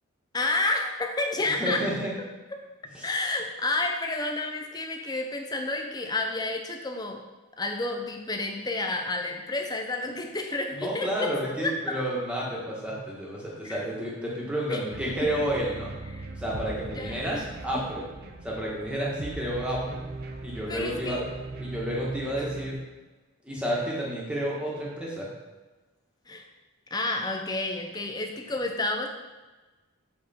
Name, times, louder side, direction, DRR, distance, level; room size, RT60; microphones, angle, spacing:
voice 1, 0.3-1.8 2.5-2.6 3.0-7.2 7.6-11.3 11.6-12.0 13.6-13.9 14.7-14.8 16.1-16.2 16.9-17.5 20.7-21.2 26.3-26.5 26.9-29.1, left 2 dB, 20° left, 4 dB, 0.6 m, -30 dB
voice 2, 1.4-2.1 2.9-3.1 10.7-15.9 16.3-18.1 18.4-20.0 20.4-21.2 21.6-22.8 23.4-25.3, equal, 5° right, -5 dB, 1.4 m, -31 dB
sound 1, 14.9-22.7, right 2 dB, 45° right, 0.5 m, -39 dB
7.5 x 4.2 x 4.3 m, 1.2 s
head